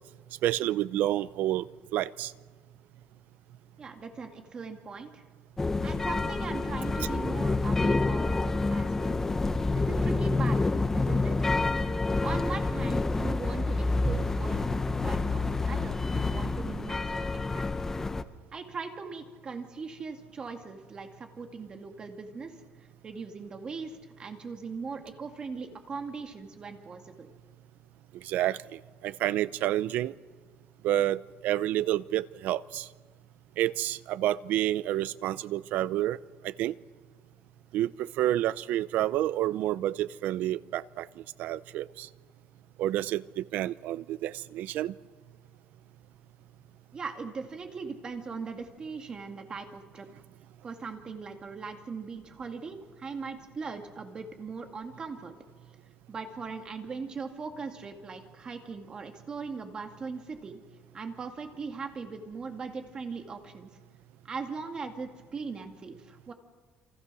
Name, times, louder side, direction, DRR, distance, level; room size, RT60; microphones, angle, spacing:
voice 1, 0.4-1.7 1.9-2.3 14.0-14.2 28.2-28.6 29.0-30.1 30.8-32.9 33.6-36.2 36.4-36.7 37.7-41.1 41.4-42.1 42.8-44.9, right 13 dB, 65° right, 18 dB, 0.6 m, -29 dB
voice 2, 3.8-5.2 5.8-8.4 8.7-9.2 9.7-11.5 12.2-14.6 14.9-17.6 18.5-22.6 23.0-27.3 46.9-50.1 50.6-55.3 56.1-60.6 60.9-63.7 64.2-66.3, right 4 dB, 30° right, 5 dB, 2.2 m, -39 dB
sound 1, 5.6-18.2, left 3 dB, 15° left, 0.8 m, -28 dB
28.5 x 25.0 x 6.2 m, 1.5 s
cardioid pair, 160°, 3 cm